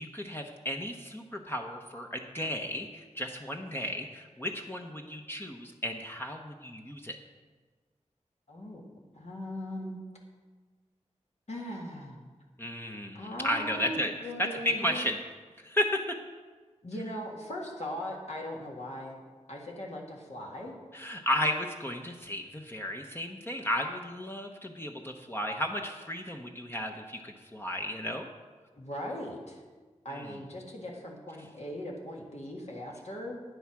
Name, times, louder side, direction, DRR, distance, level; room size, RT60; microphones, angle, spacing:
voice 1, 0.0-7.2 12.6-14.1 14.4-15.2 15.6-16.2 20.9-28.3 30.1-30.3, left 1 dB, 20° left, 2 dB, 0.9 m, -34 dB
voice 2, 8.5-8.8 9.1-10.0 11.5-12.2 13.1-15.0 16.8-19.2 19.5-20.7 28.8-29.6 30.0-33.4, equal, 60° left, -2 dB, 1.9 m, -39 dB
9.6 x 7.9 x 6.0 m, 1.4 s
wide cardioid pair, 60°, 13 cm